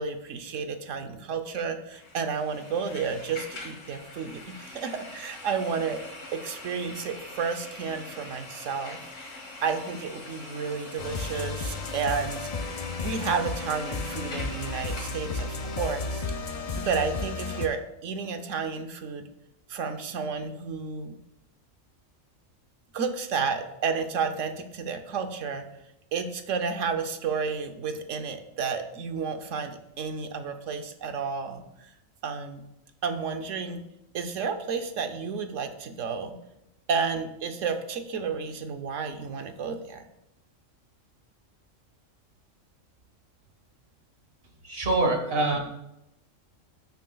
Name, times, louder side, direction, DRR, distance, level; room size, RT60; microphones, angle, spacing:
voice 1, 0.0-6.0 6.3-9.0 9.3-16.3 16.7-19.2 19.7-21.1 22.9-25.6 26.1-31.6 32.2-32.6 33.0-33.8 34.1-36.4 36.9-40.1, right 5 dB, 70° right, 7 dB, 1.1 m, -31 dB
sound 1, 1.9-16.1, left 2 dB, 70° left, 1.7 m, -43 dB
sound 2, 11.0-17.7, left 4 dB, 50° left, 0.4 m, -33 dB
voice 2, 44.6-45.6, right 2 dB, 50° right, 3 dB, 1.6 m, -24 dB
14.0 x 6.5 x 2.3 m, 0.87 s
omnidirectional pair, 1.4 m